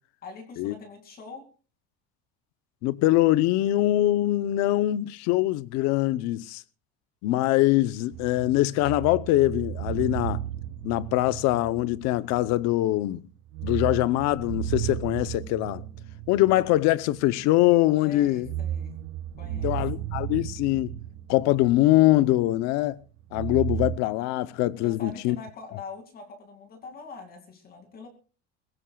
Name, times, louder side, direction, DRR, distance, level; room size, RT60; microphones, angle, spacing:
voice 1, 0.2-1.4 18.0-18.9 19.4-20.0 24.8-28.1, left 4 dB, 30° left, 2.5 m, -43 dB
voice 2, 2.8-6.6 7.2-10.4 10.8-13.2 13.6-15.8 16.3-18.5 19.6-20.9 21.3-23.0 23.3-25.4, left 16 dB, 55° left, 0.8 m, -23 dB
sound 1, 8.1-12.8 13.0-13.2 13.5-17.7 18.2-22.5 23.3-24.0, right 11 dB, 45° right, 1.5 m, -34 dB
24.0 x 16.0 x 2.3 m
cardioid pair, 180°, 32 cm